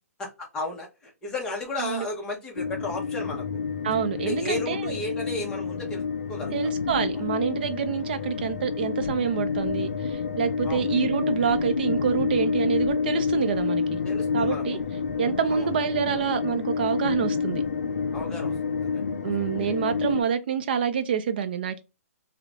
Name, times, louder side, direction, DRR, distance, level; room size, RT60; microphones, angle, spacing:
voice 1, 0.2-3.5 4.2-6.0 6.3-6.7 7.1-7.2 10.6-10.9 14.0-14.8 15.5-15.7 18.1-19.3, left 2 dB, 10° left, 0.6 m, -34 dB
sound 1, 2.6-20.2, left 5 dB, 80° left, 0.4 m, -29 dB
voice 2, 3.8-5.0 6.5-14.0 14.3-14.8 15.2-17.6 19.2-21.8, right 7 dB, 40° right, 0.4 m, -27 dB
3.0 x 2.0 x 2.3 m
hypercardioid pair, 165°, 8 cm